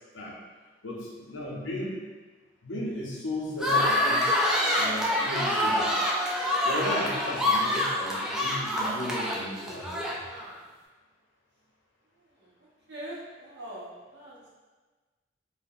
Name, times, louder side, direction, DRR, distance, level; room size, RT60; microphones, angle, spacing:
voice 1, 0.8-2.0 2.6-4.3 4.7-6.0 6.6-10.0, left 1 dB, 75° left, -3 dB, 0.7 m, -35 dB
sound 1, 3.6-10.5, left 1 dB, 5° right, 0.3 m, -26 dB
voice 2, 12.9-14.5, right 1 dB, 60° right, -6 dB, 0.9 m, -42 dB
2.6 x 2.2 x 3.5 m, 1.3 s
head